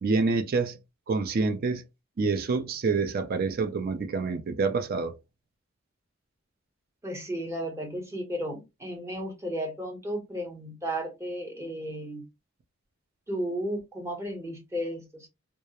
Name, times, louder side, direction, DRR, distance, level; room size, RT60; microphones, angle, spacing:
voice 1, 0.0-0.8 1.1-1.8 2.2-5.2, right 4 dB, 45° right, 0.4 m, -27 dB
voice 2, 7.0-12.2 13.3-15.3, equal, 15° right, 0.7 m, -34 dB
2.3 x 2.0 x 2.8 m
head